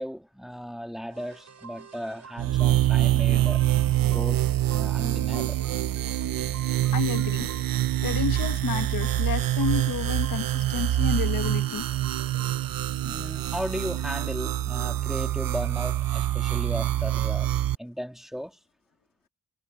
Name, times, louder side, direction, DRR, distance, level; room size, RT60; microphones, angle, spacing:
voice 1, 0.0-3.6 4.0-5.6 13.0-17.5 17.8-18.6, equal, ahead, 2.5 m, -36 dB
sound 1, 1.1-12.8, right 5 dB, 50° right, 6.7 m, -48 dB
sound 2, 2.4-17.8, right 13 dB, 70° right, 0.6 m, -25 dB
voice 2, 6.9-7.5 8.0-11.9, left 8 dB, 65° left, 1.2 m, -31 dB
cardioid pair, 95°, 35 cm